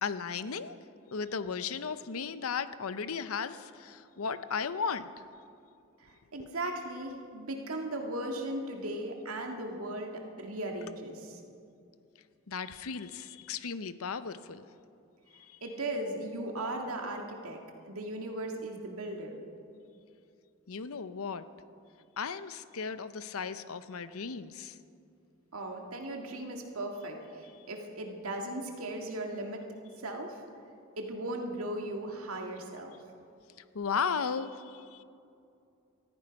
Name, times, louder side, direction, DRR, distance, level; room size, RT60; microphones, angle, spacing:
voice 1, 0.0-0.8 1.1-5.1 12.5-14.6 15.5-15.6 20.7-21.5 22.2-24.8 33.7-35.0, left 6 dB, 85° left, 13 dB, 0.7 m, -35 dB
voice 2, 6.0-11.4 15.6-19.4 25.5-29.6 30.0-30.4 31.0-33.0, right 1 dB, 85° right, 2 dB, 2.1 m, -37 dB
19.5 x 14.0 x 5.3 m, 2.6 s
head